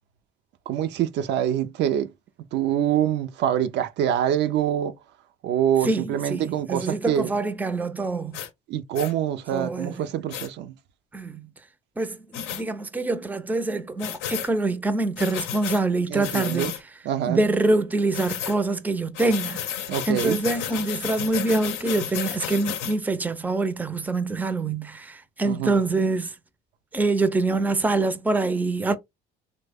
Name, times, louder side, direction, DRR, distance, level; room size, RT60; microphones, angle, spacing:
voice 1, 0.7-2.1 2.5-4.9 5.4-7.3 8.7-10.7 16.1-16.7 17.1-17.4 19.9-20.4 25.5-25.8, right 10 dB, 65° right, 0.4 m, -25 dB
voice 2, 5.8-8.4 9.5-10.0 11.1-11.5 12.0-16.7 17.3-19.6 20.1-26.3 26.9-28.9, right 2 dB, 10° right, 0.4 m, -25 dB
sound 1, 8.3-8.5 8.9-9.1 10.3-10.5 12.3-12.6 14.0-14.5 15.2-15.8 16.2-16.8 18.1-18.6 19.1-22.9, left 10 dB, 85° left, 0.6 m, -32 dB
3.2 x 2.1 x 3.4 m
supercardioid pair, 90°, 19 cm